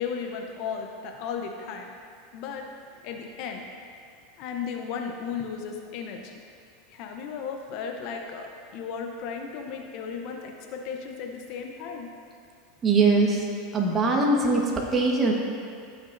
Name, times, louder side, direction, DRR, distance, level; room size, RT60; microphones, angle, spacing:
voice 1, 0.0-1.9 2.3-2.6 3.0-3.7 4.4-6.4 6.9-12.1, left 6 dB, 55° left, 3 dB, 0.8 m, -35 dB
voice 2, 12.8-13.5 13.7-15.3, right 3 dB, 25° right, -1 dB, 1.3 m, -22 dB
14.5 x 6.1 x 2.6 m, 2.4 s
supercardioid pair, 120°, 0 cm